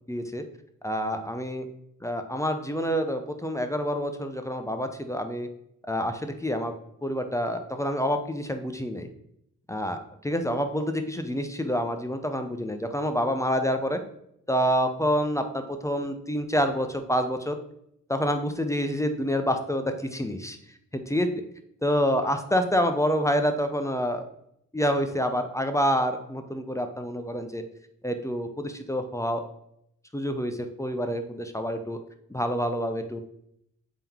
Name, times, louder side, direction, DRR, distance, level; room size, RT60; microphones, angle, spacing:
voice 1, 0.1-0.4 0.8-1.7 2.0-5.5 5.9-6.7 7.0-9.1 9.7-10.0 10.2-14.0 14.5-17.6 18.1-20.6 21.1-21.3 21.8-24.2 24.7-27.6 28.0-29.4 30.1-32.0 32.3-33.2, equal, 10° left, 7 dB, 0.4 m, -27 dB
3.6 x 2.9 x 3.4 m, 0.75 s
cardioid pair, 65°, 33 cm